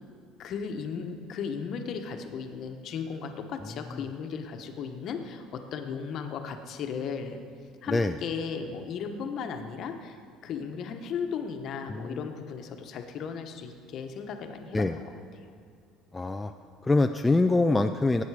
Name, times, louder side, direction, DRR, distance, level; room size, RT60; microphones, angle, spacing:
voice 1, 0.4-7.4 7.8-10.2 10.4-15.1, left 6 dB, 45° left, 5 dB, 1.0 m, -36 dB
voice 2, 11.9-12.2 14.7-15.0 16.1-16.5 16.8-18.2, left 2 dB, 10° left, 6 dB, 0.3 m, -24 dB
17.5 x 8.6 x 4.8 m, 2.2 s
cardioid pair, 150°, 0 cm